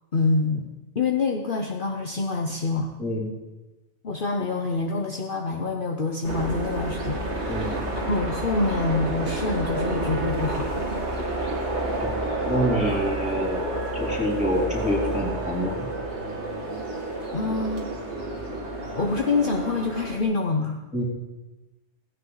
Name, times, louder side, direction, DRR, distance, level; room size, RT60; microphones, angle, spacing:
voice 1, 0.1-2.9 4.0-10.7 17.3-17.9 18.9-20.8, left 3 dB, 45° left, 1 dB, 1.1 m, -26 dB
sound 1, 6.2-20.2, right 1 dB, 65° right, 2.6 m, -29 dB
voice 2, 12.0-13.7 13.9-15.9 20.9-21.0, equal, 5° right, -3 dB, 3.4 m, -27 dB
17.0 x 15.5 x 4.0 m, 1.1 s
omnidirectional pair, 1.3 m